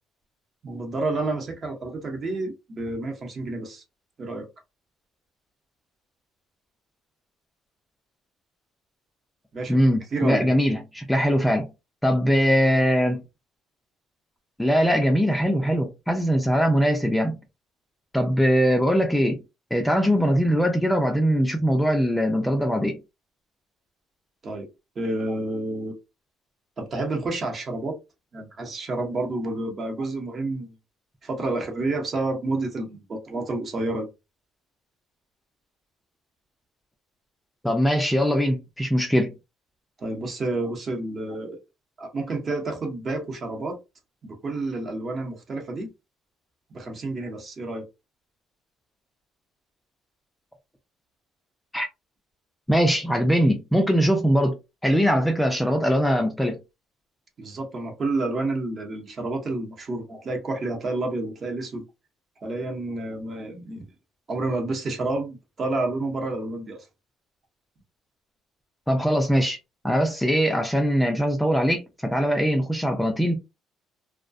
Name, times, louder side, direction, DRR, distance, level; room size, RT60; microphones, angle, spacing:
voice 1, 0.6-3.8 4.2-4.5 9.5-9.8 10.1-10.5 24.4-24.7 25.0-25.9 26.8-28.0 28.3-30.7 31.2-34.1 40.0-41.6 42.0-43.8 44.2-45.9 46.7-47.9 57.4-61.8 62.4-63.9 64.3-66.9, right 2 dB, 35° right, 0.9 m, -29 dB
voice 2, 9.7-11.7 12.0-13.2 14.6-17.4 18.1-19.4 19.7-23.0 37.6-39.3 51.7-51.9 52.7-54.6 54.8-56.6 68.9-69.6 69.8-73.4, equal, 5° left, 0.4 m, -21 dB
2.3 x 2.1 x 2.5 m
cardioid pair, 120°, 0 cm